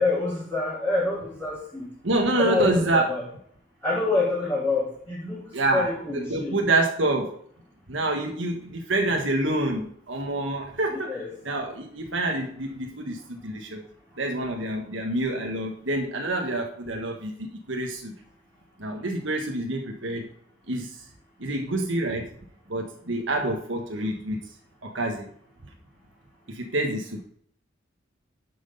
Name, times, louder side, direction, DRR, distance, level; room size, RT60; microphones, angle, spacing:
voice 1, 0.0-1.8 2.4-3.2 3.8-5.4 5.7-6.6 10.9-11.3, left 3 dB, 10° left, -10 dB, 3.9 m, -26 dB
voice 2, 2.0-3.1 5.5-7.4 7.9-11.2 11.4-13.9 14.2-18.1 18.8-20.2 20.7-21.0 21.4-22.3 22.7-24.4 24.8-25.3 26.5-27.2, right 2 dB, 75° right, 1 dB, 1.4 m, -27 dB
11.0 x 6.2 x 5.3 m, 0.63 s
head